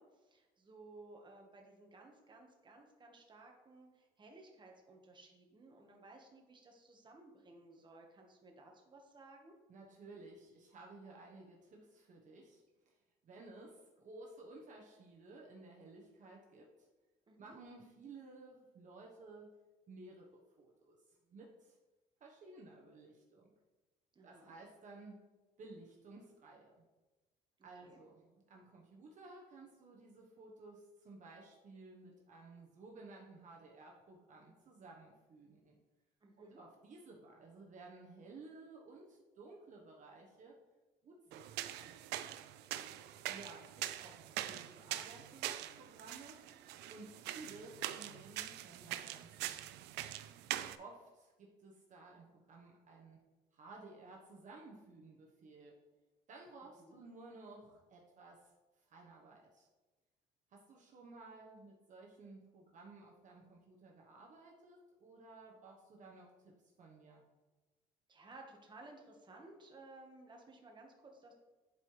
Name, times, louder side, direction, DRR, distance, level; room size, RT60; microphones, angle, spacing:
voice 1, 0.0-9.6 17.3-17.5 24.1-24.5 27.6-28.0 36.2-36.6 42.6-43.0 56.8-57.0 68.1-71.3, right 2 dB, 25° right, 1 dB, 1.4 m, -58 dB
voice 2, 9.7-13.0 13.2-16.9 17.4-19.5 19.9-21.8 22.2-23.5 24.2-25.2 25.6-26.7 27.6-35.8 36.4-40.6 41.0-41.9 43.2-46.4 46.9-49.8 50.8-53.2 53.5-55.8 56.3-58.5 58.8-59.7 60.5-67.3, right 3 dB, 50° right, -1 dB, 1.1 m, -55 dB
sound 1, 41.3-50.8, right 13 dB, 90° right, 0.4 m, -43 dB
10.5 x 4.6 x 3.2 m, 1.2 s
cardioid pair, 110°, 17 cm